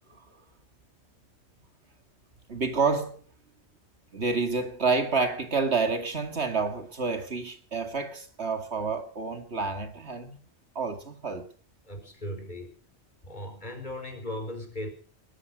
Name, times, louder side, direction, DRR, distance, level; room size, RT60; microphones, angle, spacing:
voice 1, 2.5-3.2 4.1-10.4 10.8-11.5, right 4 dB, 80° right, 2.6 m, -29 dB
voice 2, 11.8-12.8 13.2-14.9, left 1 dB, 45° left, 4.6 m, -37 dB
21.0 x 12.5 x 5.2 m
omnidirectional pair, 1.1 m